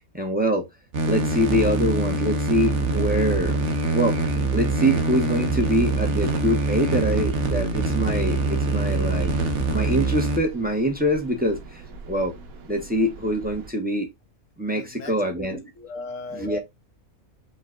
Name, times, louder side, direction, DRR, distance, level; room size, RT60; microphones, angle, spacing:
voice 1, 0.1-0.7 1.0-3.6 3.9-4.2 4.5-9.3 9.7-12.3 12.7-14.1 14.6-15.7 16.3-16.6, equal, 10° right, 0.7 m, -24 dB
sound 1, 0.9-10.4, right 3 dB, 60° right, 1.0 m, -24 dB
sound 2, 7.9-13.7, right 3 dB, 80° right, 1.3 m, -43 dB
voice 2, 14.7-15.1 15.5-16.6, left 3 dB, 70° left, 1.1 m, -38 dB
5.5 x 2.3 x 3.7 m
omnidirectional pair, 1.5 m